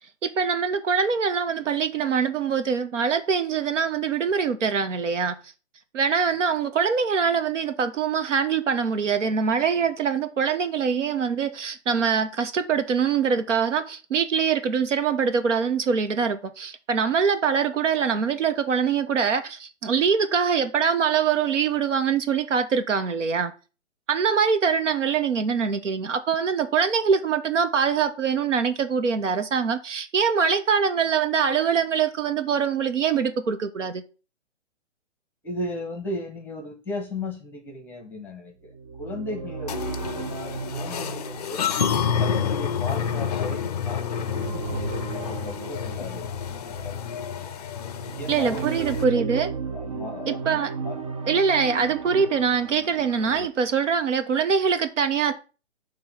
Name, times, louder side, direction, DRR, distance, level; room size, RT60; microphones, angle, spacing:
voice 1, 0.2-5.3 5.9-23.5 24.1-34.0 48.3-49.5 50.3-50.7 51.3-55.3, right 6 dB, 80° right, 1.0 m, -23 dB
voice 2, 35.4-38.7 39.0-41.7 42.2-46.3 46.7-47.4 48.2-49.4 49.7-50.9, left 2 dB, 5° left, 0.9 m, -36 dB
sound 1, 38.7-47.2 47.8-53.5, right 5 dB, 30° right, 0.4 m, -35 dB
sound 2, 39.7-49.0, left 7 dB, 35° left, 0.4 m, -29 dB
6.8 x 3.1 x 5.5 m
hypercardioid pair, 145°, 36 cm